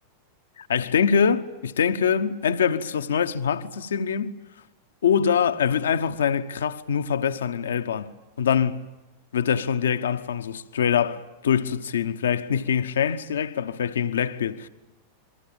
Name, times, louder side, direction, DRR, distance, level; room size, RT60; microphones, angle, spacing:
voice 1, 0.6-4.3 5.0-8.1 8.4-8.8 9.3-14.7, left 7 dB, 65° left, 1.1 m, -24 dB
28.0 x 23.0 x 8.8 m
figure-of-eight pair, 90°, 0 cm